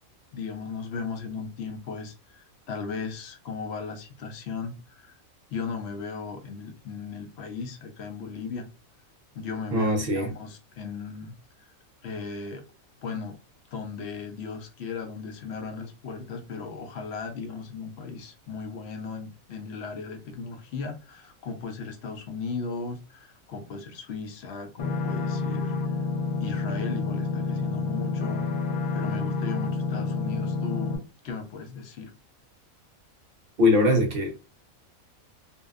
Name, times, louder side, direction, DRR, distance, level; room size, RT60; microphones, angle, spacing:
voice 1, 0.3-5.2 5.5-8.7 9.3-11.7 12.0-12.6 13.0-13.4 13.7-26.0 26.4-31.0 31.2-32.1, left 5 dB, 65° left, 0.7 m, -36 dB
voice 2, 9.7-10.3 33.6-34.4, left 2 dB, 55° right, 0.7 m, -22 dB
sound 1, 24.8-31.0, left 4 dB, 85° left, 0.3 m, -29 dB
2.7 x 2.2 x 2.3 m
omnidirectional pair, 1.5 m